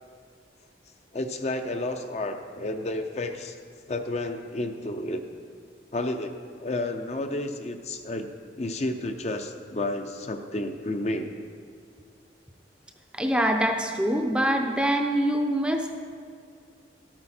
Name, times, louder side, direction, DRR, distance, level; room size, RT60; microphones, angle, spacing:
voice 1, 1.1-3.6 3.9-5.2 5.9-8.3 8.5-11.3, left 2 dB, 35° left, 6 dB, 0.5 m, -31 dB
voice 2, 13.1-15.9, right 1 dB, 5° right, 4 dB, 0.5 m, -24 dB
12.0 x 8.8 x 4.3 m, 2.2 s
head